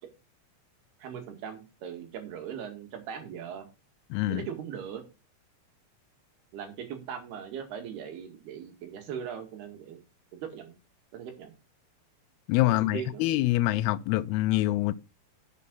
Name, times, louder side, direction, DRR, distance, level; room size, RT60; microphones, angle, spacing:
voice 1, 1.0-3.7 4.3-5.0 6.5-10.0 10.3-10.7 11.1-11.5 12.6-13.3, right 8 dB, 85° right, 4.0 m, -39 dB
voice 2, 4.1-4.4 12.5-14.9, left 16 dB, 85° left, 2.6 m, -25 dB
8.5 x 7.3 x 5.3 m
omnidirectional pair, 4.4 m